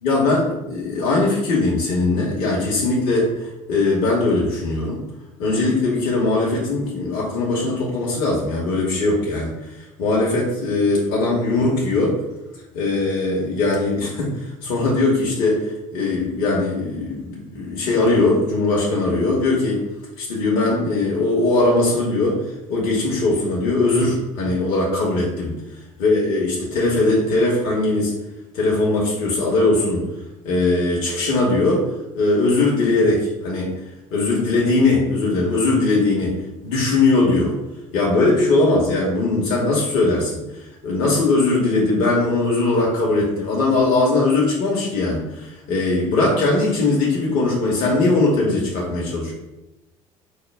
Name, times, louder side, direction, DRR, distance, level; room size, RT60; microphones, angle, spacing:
voice 1, 0.0-5.0 5.4-12.2 12.7-15.6 15.9-19.8 20.2-22.4 22.7-25.6 26.0-28.1 28.5-30.0 30.4-31.8 32.1-33.7 34.1-36.4 36.6-37.6 37.9-40.4 40.8-49.3, left 2 dB, 65° left, -3 dB, 1.1 m, -20 dB
5.4 x 2.2 x 3.4 m, 0.97 s
hypercardioid pair, 65°, 17 cm